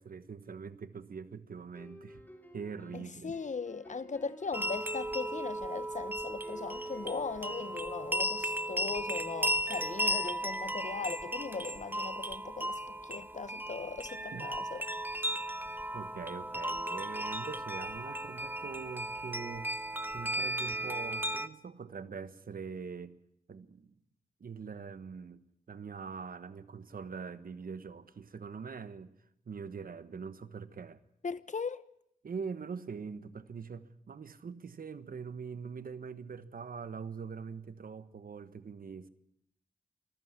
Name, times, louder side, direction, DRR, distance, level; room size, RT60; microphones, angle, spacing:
voice 1, 0.0-2.2 2.5-3.4 14.3-14.5 15.9-19.7 20.1-23.2 23.5-23.9 24.4-25.4 25.7-29.1 29.5-31.0 32.2-39.1, right 5 dB, 90° right, 1.3 m, -43 dB
sound 1, 1.8-4.8 6.4-7.9, left 1 dB, 15° left, 5.9 m, -54 dB
voice 2, 2.9-14.8 31.2-31.8, left 4 dB, 60° left, 1.0 m, -39 dB
sound 2, 4.5-21.5, right 1 dB, 15° right, 1.0 m, -35 dB
25.5 x 14.5 x 9.6 m
wide cardioid pair, 75°, 14 cm